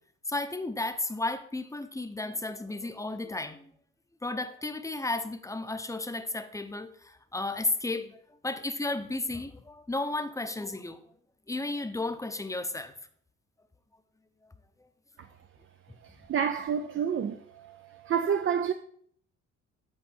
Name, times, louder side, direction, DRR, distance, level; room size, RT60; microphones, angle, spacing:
voice 1, 0.3-3.7 4.2-11.0 11.5-12.9, left 2 dB, 10° left, 0.7 m, -33 dB
voice 2, 16.3-17.8 18.0-18.7, right 7 dB, 45° right, 0.5 m, -28 dB
10.0 x 4.3 x 4.4 m
cardioid pair, 90°, 30 cm